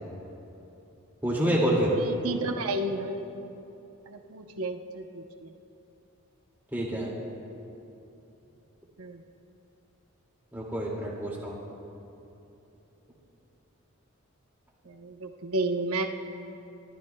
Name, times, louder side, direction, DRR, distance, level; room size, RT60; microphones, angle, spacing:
voice 1, 1.2-2.0 6.7-7.1 10.5-11.6, right 1 dB, 10° right, -4 dB, 2.3 m, -27 dB
voice 2, 2.0-3.3 4.1-5.5 9.0-9.2 14.9-16.1, right 2 dB, 85° right, 4 dB, 0.9 m, -32 dB
30.0 x 14.0 x 2.3 m, 2.9 s
head